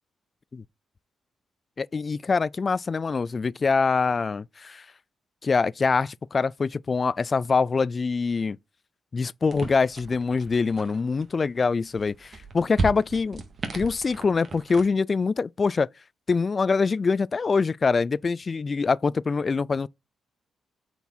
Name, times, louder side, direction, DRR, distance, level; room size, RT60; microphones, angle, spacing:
voice 1, 1.8-4.9 5.4-8.6 9.1-13.4 13.7-15.9 16.3-19.9, left 4 dB, 40° left, 0.3 m, -24 dB
sound 1, 9.5-14.9, right 3 dB, 50° right, 2.2 m, -36 dB
8.2 x 4.5 x 4.1 m
cardioid pair, 75°, 0 cm